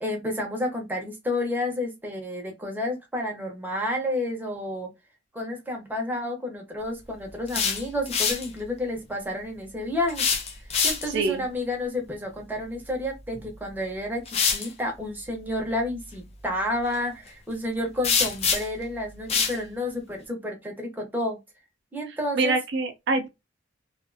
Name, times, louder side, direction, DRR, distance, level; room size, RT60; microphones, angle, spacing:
voice 1, 0.0-4.9 5.3-10.3 10.8-21.4 21.9-22.6, left 1 dB, 10° right, 0.8 m, -30 dB
sound 1, 7.3-8.5 10.1-11.3 13.3-13.5 14.3-14.7 18.0-18.8 19.3-19.6, left 6 dB, 35° left, 0.5 m, -25 dB
voice 2, 11.1-11.4 22.3-23.3, right 3 dB, 65° right, 0.5 m, -25 dB
2.5 x 2.4 x 2.5 m
head